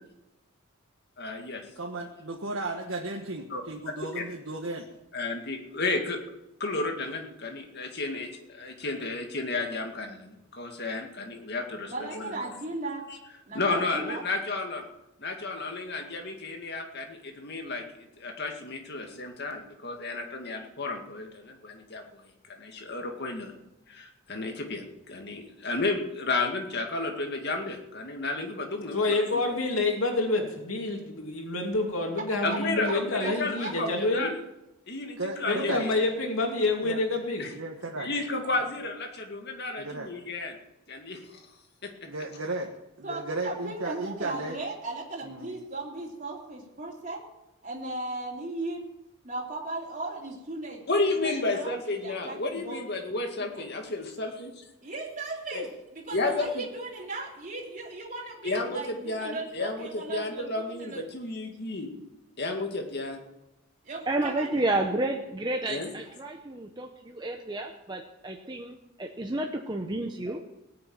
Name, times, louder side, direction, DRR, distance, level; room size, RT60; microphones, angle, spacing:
voice 1, 1.2-1.6 3.5-3.6 4.2-4.3 5.1-6.2 6.6-12.5 13.5-14.9 15.2-22.2 22.5-23.5 23.9-29.4 32.4-34.3 34.9-35.9 37.4-37.5 38.0-40.6 40.9-41.4 41.8-41.9 50.9-54.6 55.5-55.7 56.1-56.6 58.4-61.9 62.4-63.2 65.7-65.9, left 3 dB, 50° left, 3 dB, 2.1 m, -32 dB
voice 2, 1.8-4.9 35.2-35.9 36.8-37.0 37.5-38.1 39.8-40.1 42.1-42.7 43.0-44.6 45.2-45.6, right 2 dB, 70° right, 0 dB, 1.4 m, -35 dB
voice 3, 11.9-13.0 13.5-14.2 32.8-32.9 33.2-33.7 43.0-47.2 47.6-48.9 49.2-51.7 52.0-52.8 53.5-53.7 54.8-55.7 55.9-61.0 63.8-64.6, right 2 dB, 35° right, -3 dB, 3.2 m, -37 dB
voice 4, 28.9-34.3 35.5-37.4, left 2 dB, 80° left, 1 dB, 2.7 m, -28 dB
voice 5, 64.1-70.4, right 2 dB, 20° right, 2 dB, 0.9 m, -31 dB
18.5 x 6.9 x 8.8 m, 0.95 s
head